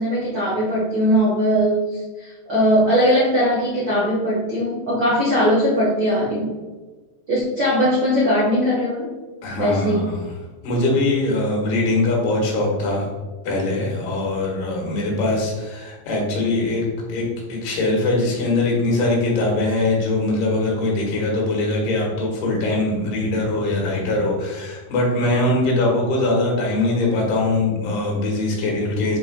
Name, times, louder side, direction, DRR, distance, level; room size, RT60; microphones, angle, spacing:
voice 1, 0.0-6.6 7.3-9.1 9.5-10.0, equal, 85° right, -7 dB, 0.9 m, -20 dB
voice 2, 9.4-10.3 10.6-13.1 13.4-29.2, left 2 dB, 75° left, -2 dB, 3.7 m, -22 dB
9.3 x 4.5 x 2.3 m, 1.3 s
omnidirectional pair, 4.6 m